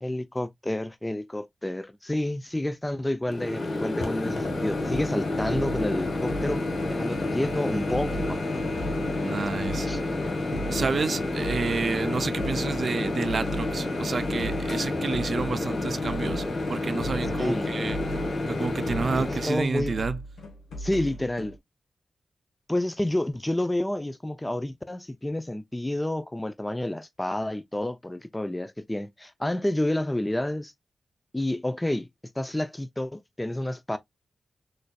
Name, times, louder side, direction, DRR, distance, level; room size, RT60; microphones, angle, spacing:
voice 1, 0.0-6.6 6.9-8.6 9.9-10.0 17.4-17.7 19.2-19.9 20.8-21.6 22.7-30.7 31.3-32.1 32.4-34.0, left 1 dB, 15° left, 0.5 m, -29 dB
Microwave oven, 3.3-19.5, left 2 dB, 65° left, 1.4 m, -29 dB
sound 1, 4.4-21.6, equal, 85° left, 1.1 m, -38 dB
voice 2, 9.2-9.9 10.5-18.0 18.5-20.2, right 4 dB, 60° right, 0.5 m, -30 dB
3.9 x 3.3 x 2.2 m
cardioid pair, 45°, 0 cm